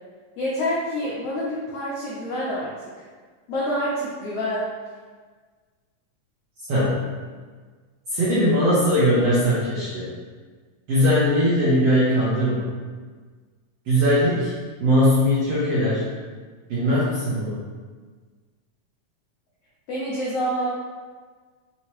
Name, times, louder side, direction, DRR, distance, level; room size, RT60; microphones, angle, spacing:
voice 1, 0.4-2.7 3.5-4.7 19.9-20.7, equal, 90° left, -7 dB, 1.3 m, -27 dB
voice 2, 6.7-7.1 8.1-10.1 10.9-12.7 13.9-14.5 14.8-16.1 16.7-17.5, equal, 75° right, -9 dB, 1.4 m, -20 dB
5.3 x 2.8 x 3.0 m, 1.5 s
omnidirectional pair, 3.8 m